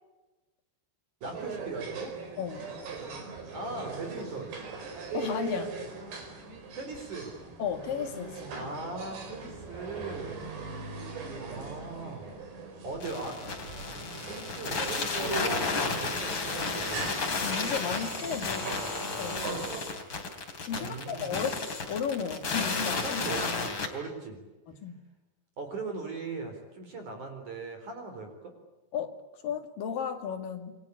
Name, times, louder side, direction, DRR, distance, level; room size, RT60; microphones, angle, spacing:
voice 1, 1.2-2.1 3.5-4.5 6.7-7.3 8.6-10.5 10.7-13.4 13.8-17.2 18.4-19.3 20.8-21.4 23.0-24.4 25.6-28.5, right 3 dB, 40° right, 5 dB, 5.1 m, -40 dB
sound 1, 1.2-19.8, right 4 dB, 60° right, 6.6 m, -40 dB
voice 2, 2.4-2.7 5.1-5.8 7.6-8.6 17.4-18.6 19.0-19.8 20.7-21.6 21.9-23.2 24.7-25.0 28.9-29.2 29.4-30.8, left 7 dB, 50° left, 5 dB, 3.6 m, -34 dB
sound 2, 13.0-23.9, left 4 dB, 30° left, 3.2 m, -33 dB
29.0 x 23.5 x 8.6 m, 1.1 s
omnidirectional pair, 5.8 m